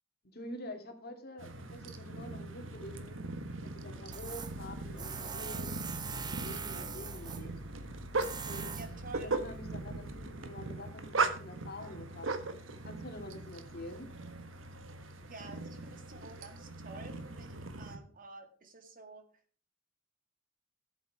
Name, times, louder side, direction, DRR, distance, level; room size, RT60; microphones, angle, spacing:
voice 1, 0.2-3.3 3.6-5.7 6.1-7.5 8.5-8.8 9.2-14.1, left 1 dB, 55° left, 5 dB, 2.4 m, -47 dB
sound 1, 1.4-18.0, right 3 dB, 85° right, 1.4 m, -39 dB
Tools, 4.1-10.3, right 5 dB, 20° right, 0.8 m, -43 dB
voice 2, 8.7-9.3 15.2-19.3, right 3 dB, 45° right, 7 dB, 1.9 m, -50 dB
14.0 x 8.1 x 4.8 m, 0.40 s
head